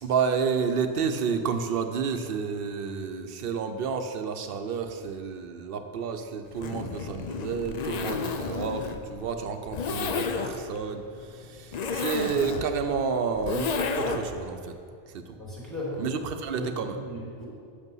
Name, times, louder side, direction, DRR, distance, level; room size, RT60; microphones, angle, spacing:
voice 1, 0.0-14.7 15.1-15.4 16.0-17.0, right 6 dB, 65° right, 8 dB, 0.8 m, -30 dB
Zipper (clothing), 6.5-14.4, left 5 dB, 50° left, 0.6 m, -32 dB
voice 2, 15.4-17.5, left 1 dB, ahead, -6 dB, 2.3 m, -37 dB
8.1 x 6.8 x 5.5 m, 2.4 s
omnidirectional pair, 1.0 m